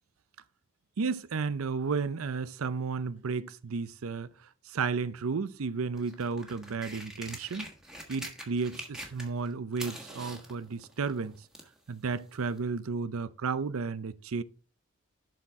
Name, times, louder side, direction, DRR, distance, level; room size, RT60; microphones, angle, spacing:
voice 1, 1.0-4.3 4.7-7.7 8.1-11.4 11.9-14.4, right 5 dB, 75° right, 0.5 m, -33 dB
sound 1, 5.9-9.5 9.7-11.8 12.6-12.7, right 1 dB, 5° right, 1.3 m, -44 dB
11.5 x 4.3 x 3.6 m
head